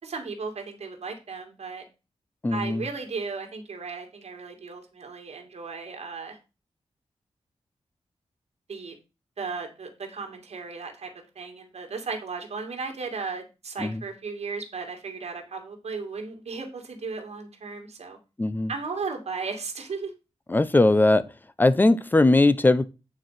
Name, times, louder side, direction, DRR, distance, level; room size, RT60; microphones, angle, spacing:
voice 1, 0.0-1.9 2.5-6.4 8.7-9.0 9.4-18.2 18.7-20.1, right 4 dB, 70° right, 2.4 m, -35 dB
voice 2, 2.4-2.9 13.8-14.0 18.4-18.7 20.5-21.3 21.6-22.9, left 2 dB, 15° left, 0.6 m, -20 dB
9.3 x 4.7 x 5.8 m
wide cardioid pair, 145°, 11 cm